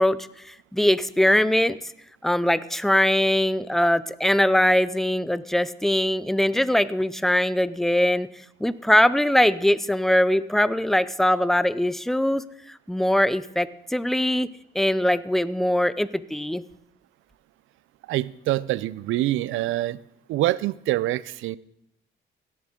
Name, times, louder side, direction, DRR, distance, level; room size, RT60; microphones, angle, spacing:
voice 1, 0.0-1.8 2.2-8.3 8.6-14.5 14.7-16.6, left 1 dB, ahead, 0.5 m, -22 dB
voice 2, 18.1-20.0 20.3-21.6, right 16 dB, 80° right, 0.4 m, -25 dB
17.0 x 8.0 x 3.7 m
cardioid pair, 90°, 20 cm